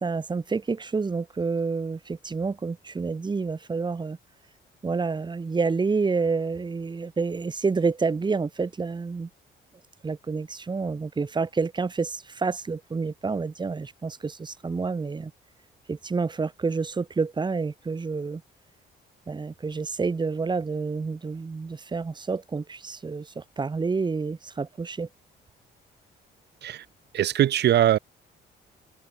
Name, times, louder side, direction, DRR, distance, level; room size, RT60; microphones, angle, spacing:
voice 1, 0.0-4.2 4.8-9.3 10.0-15.3 15.9-18.4 19.3-25.1, right 4 dB, 20° right, 0.9 m, -28 dB
voice 2, 27.1-28.0, right 11 dB, 60° right, 0.6 m, -21 dB
open air
cardioid pair, 90°, 20 cm